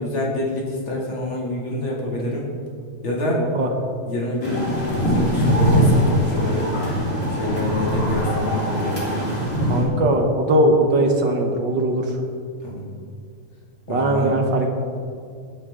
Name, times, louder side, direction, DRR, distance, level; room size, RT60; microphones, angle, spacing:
voice 1, 0.0-2.5 3.0-3.5 4.1-6.7 7.3-9.0 12.6-12.8 13.9-14.3, left 1 dB, 40° left, -3 dB, 2.9 m, -26 dB
voice 2, 3.3-3.7 9.7-12.0 13.9-14.7, right 1 dB, 55° right, 3 dB, 1.3 m, -20 dB
sound 1, 4.4-9.8, equal, 20° left, 3.8 m, -21 dB
19.5 x 11.0 x 3.7 m, 2.3 s
omnidirectional pair, 3.5 m